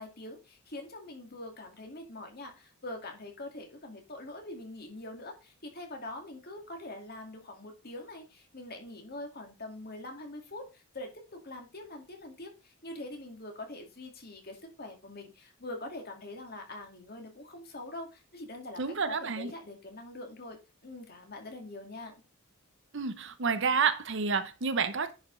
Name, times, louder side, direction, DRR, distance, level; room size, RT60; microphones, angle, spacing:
voice 1, 0.0-11.1 11.4-20.6 20.8-22.2, left 2 dB, 45° left, 2.2 m, -44 dB
voice 2, 18.8-19.5 22.9-25.1, right 5 dB, 55° right, 0.8 m, -29 dB
10.0 x 5.2 x 3.9 m
head